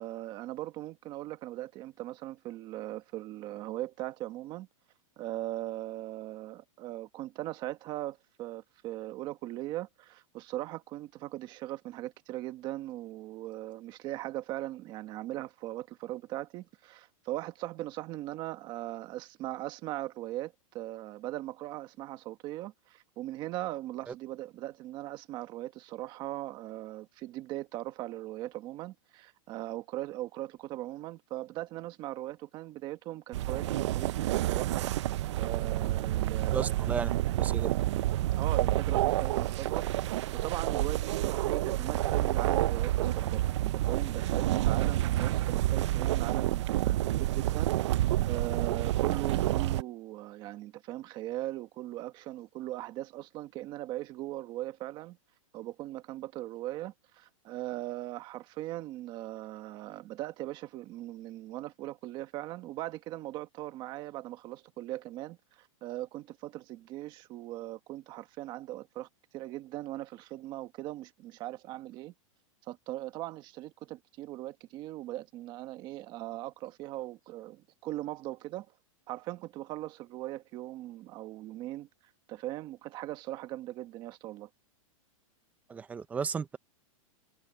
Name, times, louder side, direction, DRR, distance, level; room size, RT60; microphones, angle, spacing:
voice 1, 0.0-4.7 5.2-34.9 35.3-36.9 38.3-55.2 55.5-69.1 69.3-72.1 72.7-78.7 79.1-81.9 82.3-84.5, right 15 dB, 25° right, 1.4 m, -39 dB
sound 1, 33.3-49.8, right 14 dB, 55° right, 0.4 m, -29 dB
voice 2, 36.5-37.7 85.7-86.6, right 6 dB, 10° right, 0.6 m, -34 dB
supercardioid pair, 170°, 18 cm